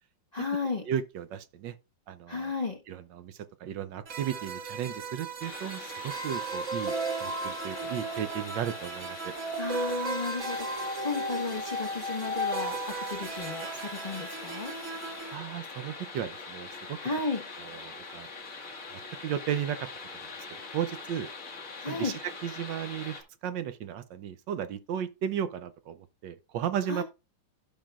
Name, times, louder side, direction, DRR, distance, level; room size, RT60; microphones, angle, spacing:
voice 1, 0.3-0.8 2.3-2.8 9.6-14.8 17.0-17.4 21.8-22.2 26.9-27.0, left 4 dB, 25° left, 1.1 m, -34 dB
voice 2, 0.9-1.8 2.1-2.5 2.9-9.4 15.3-17.0 17.6-18.6 18.9-19.9 20.1-20.3 20.7-21.3 21.9-27.0, right 9 dB, 75° right, 1.3 m, -35 dB
sound 1, 4.1-15.4, right 2 dB, 45° right, 1.4 m, -35 dB
sound 2, 5.4-23.2, left 4 dB, 45° left, 2.1 m, -43 dB
15.5 x 5.3 x 2.4 m
omnidirectional pair, 2.0 m